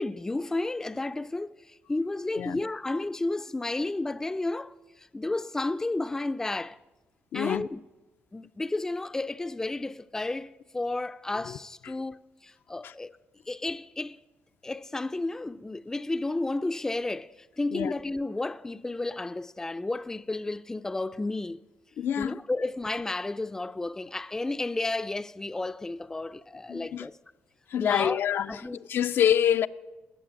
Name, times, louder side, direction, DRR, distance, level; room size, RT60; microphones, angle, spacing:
voice 1, 0.0-6.8 7.3-7.8 8.3-13.2 13.5-14.2 14.6-21.6 22.2-27.2 27.8-28.2 28.5-28.8, left 2 dB, 10° left, 0.5 m, -32 dB
voice 2, 7.3-7.7 11.5-11.6 11.8-11.9 12.8-12.9 17.7-17.9 22.0-22.4 26.7-27.1 27.7-29.7, left 9 dB, 60° left, 0.5 m, -26 dB
19.5 x 7.1 x 10.0 m
cardioid pair, 115°, 4 cm